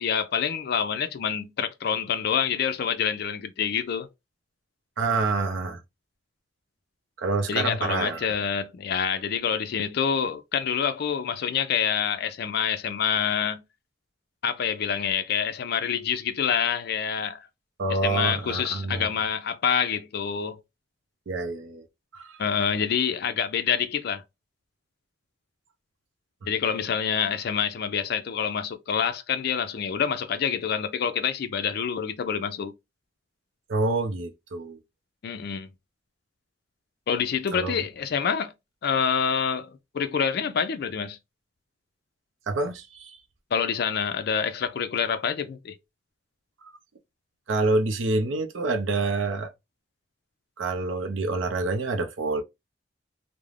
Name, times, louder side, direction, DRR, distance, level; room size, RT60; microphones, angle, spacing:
voice 1, 0.0-4.1 7.5-13.6 14.4-17.4 18.0-20.6 22.4-24.2 26.5-32.7 35.2-35.7 37.1-38.5 38.8-39.7 39.9-41.2 43.5-45.7, left 7 dB, 55° left, 0.4 m, -27 dB
voice 2, 5.0-5.8 7.2-8.2 17.8-19.1 21.3-21.9 22.1-22.4 33.7-34.8 37.5-37.8 42.5-43.2 46.6-46.7 47.5-49.5 50.6-52.4, right 3 dB, 85° right, 0.5 m, -27 dB
2.4 x 2.1 x 3.1 m
head